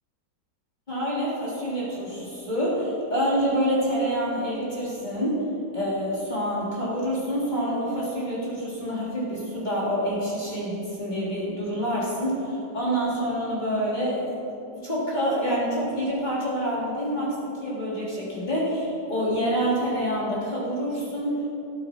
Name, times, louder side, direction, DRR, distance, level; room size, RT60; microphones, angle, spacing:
voice 1, 0.9-5.4 5.7-14.4 14.7-21.4, equal, 25° left, -7 dB, 3.4 m, -27 dB
17.5 x 8.4 x 4.5 m, 2.8 s
omnidirectional pair, 1.9 m